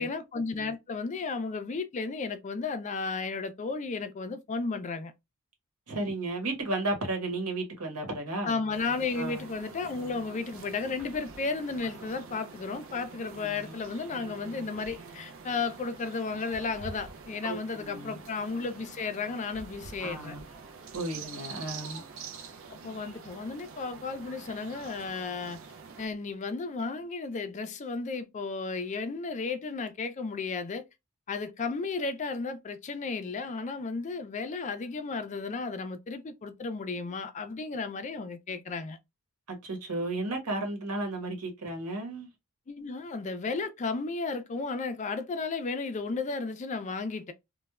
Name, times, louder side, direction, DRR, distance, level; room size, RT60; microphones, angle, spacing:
voice 1, 0.0-5.1 8.4-20.4 22.7-25.6 26.0-30.8 31.3-39.0 42.7-47.3, left 4 dB, 30° left, 0.4 m, -34 dB
voice 2, 5.9-8.5 9.1-9.4 13.4-13.7 17.4-18.2 20.0-20.4 20.9-22.0 39.5-42.3, right 2 dB, 85° right, 1.1 m, -34 dB
sound 1, 8.7-26.1, right 5 dB, 60° right, 0.5 m, -46 dB
3.1 x 2.1 x 2.3 m
head